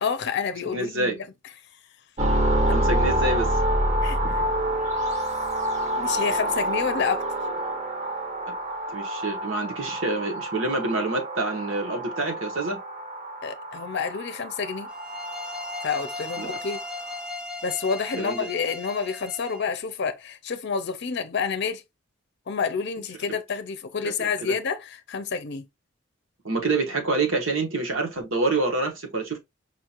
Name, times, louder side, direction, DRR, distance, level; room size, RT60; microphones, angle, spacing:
voice 1, 0.0-1.1 4.0-4.4 6.0-7.3 13.4-14.9 15.8-16.8 17.6-21.8 22.5-25.6, left 5 dB, 60° left, 0.6 m, -29 dB
voice 2, 0.7-1.2 2.7-3.6 4.2-4.3 8.9-12.8 16.4-16.6 18.2-18.5 24.0-24.6 26.4-29.4, right 3 dB, 85° right, 1.2 m, -27 dB
sound 1, 2.2-17.3, right 1 dB, 35° right, 0.7 m, -28 dB
sound 2, 14.9-19.7, left 2 dB, 5° right, 0.5 m, -37 dB
4.8 x 2.4 x 2.8 m
head